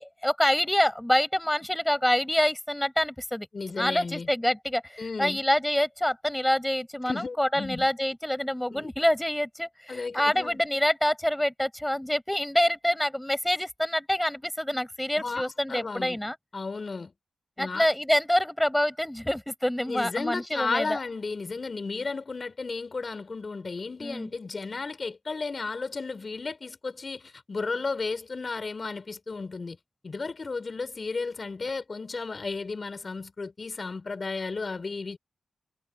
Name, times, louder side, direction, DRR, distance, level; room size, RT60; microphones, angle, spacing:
voice 1, 0.0-3.5 3.8-16.4 17.6-21.0 24.0-24.3, left 1 dB, 10° left, 7.8 m, -26 dB
voice 2, 3.5-4.3 5.0-5.4 7.1-7.9 8.7-8.9 9.9-10.6 15.2-16.3 16.5-17.1 17.6-17.9 19.9-29.8 30.0-35.2, left 4 dB, 50° left, 6.3 m, -34 dB
cardioid pair, 45°, 0 cm